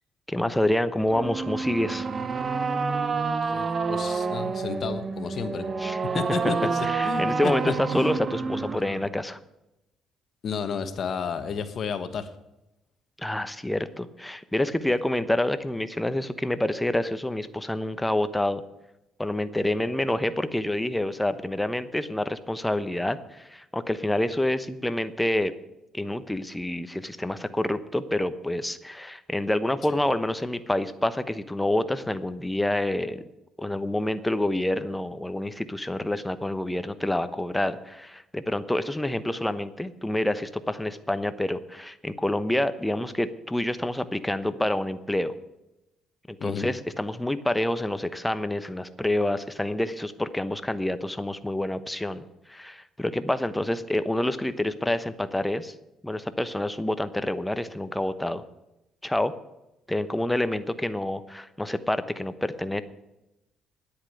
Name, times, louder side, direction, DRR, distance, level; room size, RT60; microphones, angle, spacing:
voice 1, 0.3-2.1 5.8-6.0 6.8-9.4 13.2-18.6 19.2-25.5 25.9-33.2 33.6-45.3 46.3-55.7 56.0-58.4 59.0-59.3 59.9-62.8, left 1 dB, 10° left, 12 dB, 0.9 m, -27 dB
sound 1, 1.1-9.1, right 4 dB, 35° right, 1.1 m, -28 dB
voice 2, 3.5-5.7 6.1-8.1 10.4-12.3 46.4-46.7, left 6 dB, 55° left, 10 dB, 1.3 m, -32 dB
10.0 x 8.6 x 9.4 m, 0.93 s
cardioid pair, 90°, 0 cm